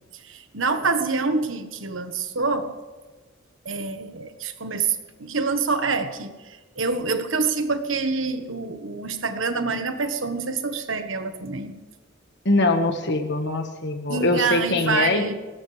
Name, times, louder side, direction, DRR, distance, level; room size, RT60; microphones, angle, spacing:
voice 1, 0.3-2.7 3.6-4.9 5.2-6.3 6.8-11.7 14.1-15.3, right 4 dB, 75° right, 8 dB, 1.4 m, -26 dB
voice 2, 12.4-15.3, left 2 dB, 60° left, 6 dB, 1.6 m, -22 dB
21.0 x 18.0 x 3.4 m, 1.3 s
head